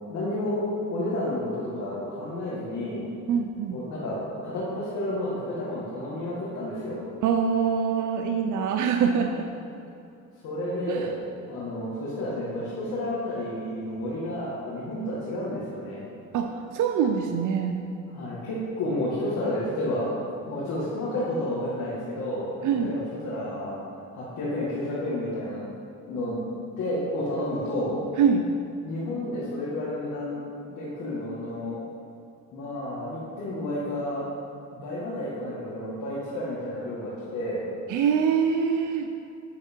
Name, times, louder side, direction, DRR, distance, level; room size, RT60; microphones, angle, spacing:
voice 1, 0.1-0.6 0.9-3.0 3.7-7.0 10.4-11.2 11.5-16.0 18.1-20.1 20.5-23.8 24.1-25.7 26.1-26.4 26.8-28.0 28.8-30.4 30.7-31.8 32.5-34.3 34.8-37.6, left 1 dB, 75° left, -8 dB, 2.2 m, -31 dB
voice 2, 3.3-3.8 7.2-9.5 10.9-11.1 16.3-17.8 22.6-22.9 28.2-28.5 37.9-39.1, right 7 dB, 80° right, 4 dB, 0.6 m, -24 dB
9.6 x 6.6 x 4.6 m, 2.6 s
cardioid pair, 90°, 30 cm